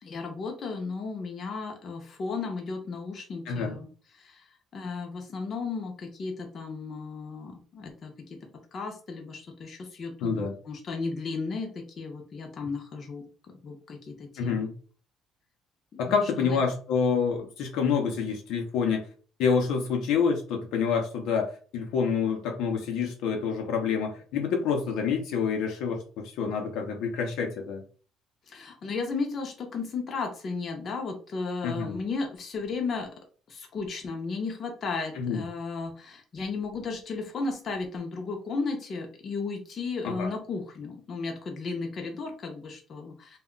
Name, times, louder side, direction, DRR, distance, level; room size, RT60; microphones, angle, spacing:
voice 1, 0.0-3.9 4.1-4.5 4.7-8.4 8.7-13.2 13.6-14.6 15.9-16.6 28.5-33.1 33.5-43.4, left 4 dB, 35° left, 0.6 m, -34 dB
voice 2, 10.2-10.5 14.4-14.7 16.0-19.0 19.4-27.8 31.6-32.0 35.2-35.4 40.0-40.3, left 6 dB, 75° left, 0.6 m, -27 dB
2.2 x 2.1 x 3.7 m
cardioid pair, 150°, 0 cm